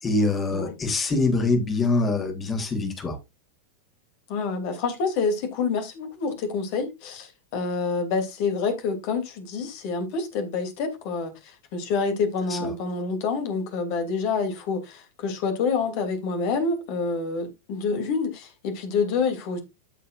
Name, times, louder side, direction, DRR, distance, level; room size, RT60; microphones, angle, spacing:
voice 1, 0.0-3.2 12.5-12.7, left 3 dB, 20° left, 3.1 m, -24 dB
voice 2, 4.3-19.6, left 4 dB, 45° left, 2.7 m, -27 dB
14.0 x 5.5 x 2.5 m
figure-of-eight pair, 90°, 0 cm